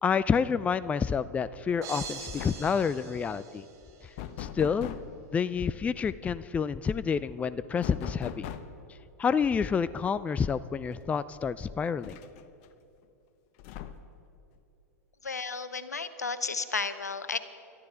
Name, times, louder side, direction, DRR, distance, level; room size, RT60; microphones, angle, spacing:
voice 1, 0.0-3.6 4.4-4.9 5.3-8.5 9.2-12.2, left 6 dB, 15° left, 16 dB, 0.4 m, -28 dB
sound 1, 1.7-1.9 2.2-2.8 4.2-5.2 7.8-8.9 10.4-10.5 10.9-11.0 12.0-12.7 13.6-14.2, left 10 dB, 50° left, 0.9 m, -40 dB
sound 2, 1.8-4.1, right 6 dB, 40° right, 2.6 m, -43 dB
voice 2, 15.2-17.4, left 4 dB, 90° left, 12 dB, 0.9 m, -33 dB
28.0 x 13.5 x 3.6 m, 2.8 s
hypercardioid pair, 100°, 9 cm